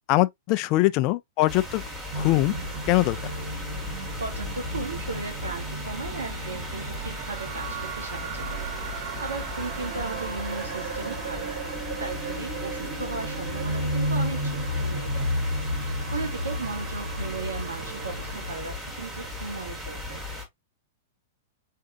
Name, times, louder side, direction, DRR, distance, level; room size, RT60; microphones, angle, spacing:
voice 1, 0.1-1.8 2.2-2.5 2.9-3.2, left 18 dB, 45° left, 0.3 m, -22 dB
sound 1, 1.5-20.5, left 1 dB, 10° right, 2.1 m, -37 dB
sound 2, 2.1-18.5, right 1 dB, 70° right, 2.5 m, -33 dB
voice 2, 4.2-8.7 9.2-15.3 16.1-20.2, right 3 dB, 85° right, 1.6 m, -36 dB
3.7 x 3.4 x 2.6 m
hypercardioid pair, 110°, 0 cm